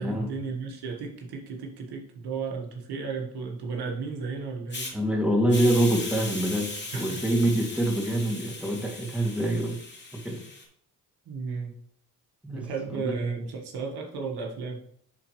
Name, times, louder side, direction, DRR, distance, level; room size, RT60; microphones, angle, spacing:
voice 1, 0.0-5.0 6.9-7.2 11.2-11.8 12.5-14.8, right 4 dB, 70° right, 1 dB, 1.6 m, -34 dB
Hiss, 4.7-4.9 5.5-10.6, left 2 dB, 25° left, 2.5 m, -38 dB
voice 2, 4.9-9.8 10.2-10.4 12.4-12.6 12.9-13.1, right 1 dB, 5° right, -1 dB, 2.4 m, -25 dB
10.5 x 4.2 x 3.1 m, 0.66 s
supercardioid pair, 65°, 40 cm